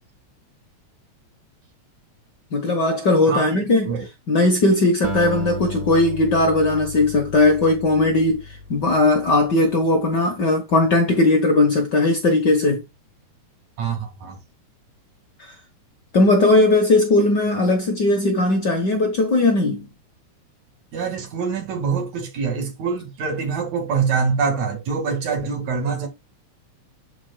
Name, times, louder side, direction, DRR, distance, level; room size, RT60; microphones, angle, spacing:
voice 1, 2.5-3.9 4.3-8.4 8.7-12.8 16.1-19.9, left 2 dB, 50° left, 1.4 m, -18 dB
Acoustic guitar, 5.0-9.5, left 1 dB, 40° right, 3.0 m, -33 dB
voice 2, 20.9-26.1, right 5 dB, 70° right, 3.2 m, -24 dB
11.0 x 4.6 x 2.3 m
omnidirectional pair, 3.3 m